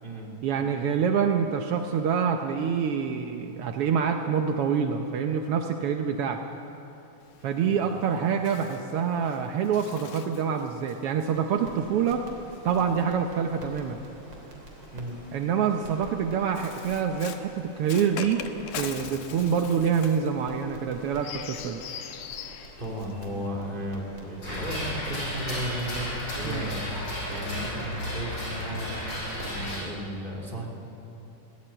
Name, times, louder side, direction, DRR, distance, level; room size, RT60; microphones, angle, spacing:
voice 1, 0.4-6.4 7.4-12.3 12.6-14.0 15.3-18.5 18.7-21.8 26.4-26.7, right 7 dB, 75° right, 4 dB, 1.3 m, -26 dB
Bird, 7.2-13.8 14.7-23.5, left 8 dB, 80° left, 2.7 m, -43 dB
sound 1, 11.3-29.4, right 1 dB, 40° right, 3.9 m, -48 dB
voice 2, 22.8-26.1 26.3-26.8 27.3-30.7, equal, 15° right, -2 dB, 3.3 m, -35 dB
sound 2, 24.4-29.8, left 1 dB, 30° left, 6.8 m, -33 dB
23.0 x 18.0 x 9.0 m, 3.0 s
omnidirectional pair, 3.7 m